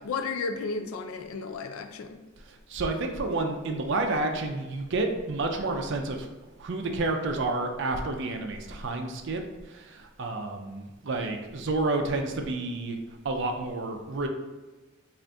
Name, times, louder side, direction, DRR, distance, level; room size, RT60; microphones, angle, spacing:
voice 1, 0.0-2.2, left 4 dB, 90° left, 7 dB, 0.4 m, -33 dB
voice 2, 2.5-6.3 6.6-9.4 9.7-13.0 13.2-14.3, right 2 dB, 60° right, 4 dB, 0.5 m, -30 dB
3.9 x 2.5 x 3.4 m, 1.2 s
head